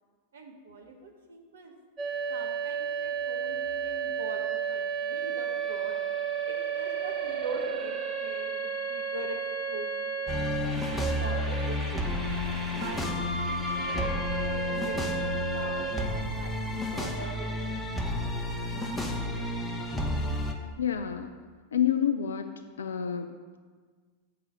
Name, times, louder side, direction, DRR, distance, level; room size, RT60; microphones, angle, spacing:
voice 1, 0.3-1.7 2.3-6.0 6.4-10.2 10.9-12.3 12.7-16.6 16.9-17.8, right 2 dB, 65° right, 2 dB, 1.2 m, -43 dB
sound 1, 2.0-16.0, right 6 dB, 20° right, 1.5 m, -33 dB
sound 2, 10.3-20.5, left 1 dB, 5° left, 1.0 m, -31 dB
voice 2, 20.8-21.3 21.7-22.5 22.8-23.6, left 9 dB, 65° left, 7 dB, 0.4 m, -28 dB
6.8 x 4.8 x 6.8 m, 1.5 s
figure-of-eight pair, 90°, 0 cm